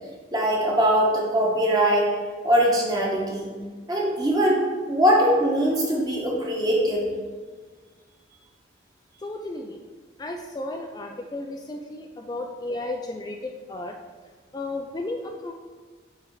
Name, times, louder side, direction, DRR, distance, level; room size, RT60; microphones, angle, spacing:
voice 1, 0.3-2.1 2.4-3.5 3.9-7.0, equal, 20° right, -3 dB, 1.1 m, -21 dB
voice 2, 9.2-9.8 10.2-13.9 14.5-15.5, left 2 dB, 20° left, 3 dB, 0.3 m, -33 dB
6.8 x 3.4 x 4.6 m, 1.5 s
head